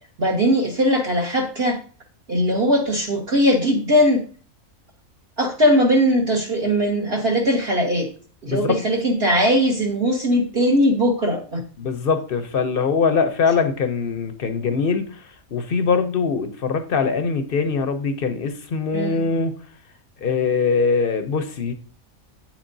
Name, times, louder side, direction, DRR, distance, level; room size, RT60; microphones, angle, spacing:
voice 1, 0.2-1.8 2.3-4.3 5.4-8.1 8.4-11.6 18.9-19.4, equal, 50° right, 0 dB, 1.1 m, -20 dB
voice 2, 11.8-15.2 15.5-19.5 20.2-21.7, left 5 dB, 50° left, 9 dB, 0.7 m, -22 dB
8.6 x 7.4 x 2.7 m, 0.40 s
omnidirectional pair, 1.5 m